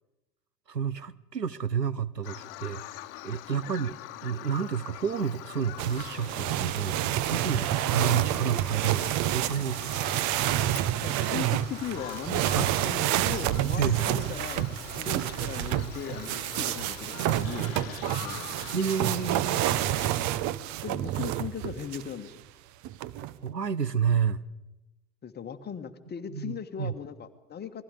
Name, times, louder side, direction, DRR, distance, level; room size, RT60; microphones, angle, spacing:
voice 1, 0.7-3.9 4.2-10.2 12.5-12.7 13.8-14.0 18.7-19.9 23.4-24.4 26.3-26.9, right 7 dB, 90° right, 17 dB, 0.9 m, -30 dB
Bird vocalization bird call bird song, 2.2-20.3, left 16 dB, 50° left, 1.3 m, -44 dB
sound 1, 5.8-22.1 22.8-23.5, right 13 dB, 35° right, 1.0 m, -29 dB
voice 2, 11.0-18.5 20.8-22.4 25.2-27.8, left 8 dB, 20° left, 8 dB, 1.7 m, -38 dB
28.5 x 21.0 x 5.1 m, 0.99 s
figure-of-eight pair, 85°, 47 cm